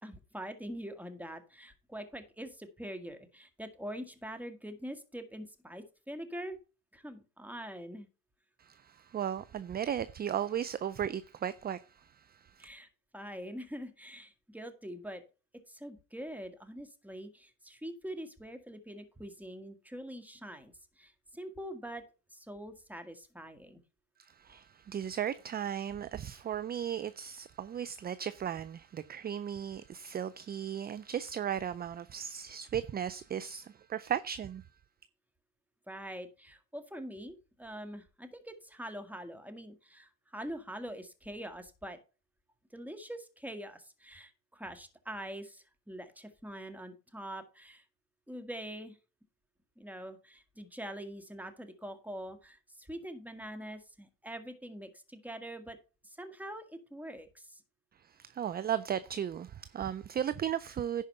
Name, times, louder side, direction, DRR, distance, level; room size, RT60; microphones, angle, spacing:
voice 1, 0.0-6.6 6.9-8.1 12.6-12.9 13.1-15.2 15.7-22.0 22.3-23.8 35.9-42.0 42.7-47.8 48.3-49.0 49.8-55.8 56.0-57.6, equal, 5° right, 1.8 m, -44 dB
voice 2, 8.6-11.8 12.6-12.7 24.4-34.6 58.2-61.0, right 9 dB, 20° right, 0.4 m, -36 dB
10.5 x 4.9 x 5.5 m
hypercardioid pair, 80°, 48 cm